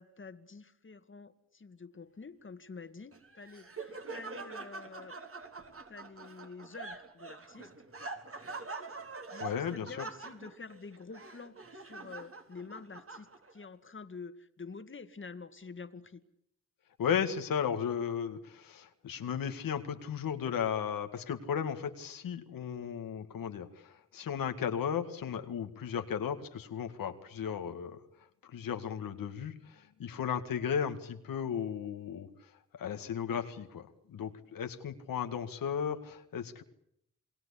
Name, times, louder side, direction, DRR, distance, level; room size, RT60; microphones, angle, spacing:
voice 1, 0.0-5.2 5.9-7.7 9.3-16.2, left 4 dB, 35° left, 10 dB, 2.1 m, -48 dB
Laughter, 3.1-13.6, right 3 dB, 40° right, 4.0 m, -45 dB
voice 2, 9.4-10.0 17.0-28.0 28.4-36.6, left 8 dB, 85° left, 7 dB, 2.0 m, -35 dB
28.5 x 20.5 x 8.5 m, 0.73 s
cardioid pair, 65°, 33 cm